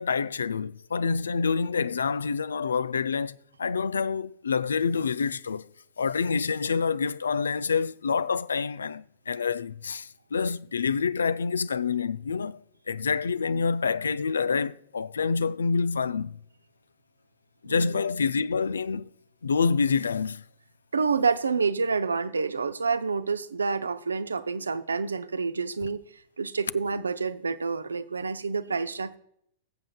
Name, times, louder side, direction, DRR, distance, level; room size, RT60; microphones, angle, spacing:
voice 1, 0.0-5.7 6.0-12.6 12.9-16.4 17.6-19.1 19.4-20.4, left 5 dB, 80° left, 0.3 m, -27 dB
voice 2, 17.7-18.0 20.9-26.0 26.4-29.2, right 5 dB, 80° right, 0.6 m, -28 dB
20.5 x 7.6 x 2.3 m
figure-of-eight pair, 100°, 0 cm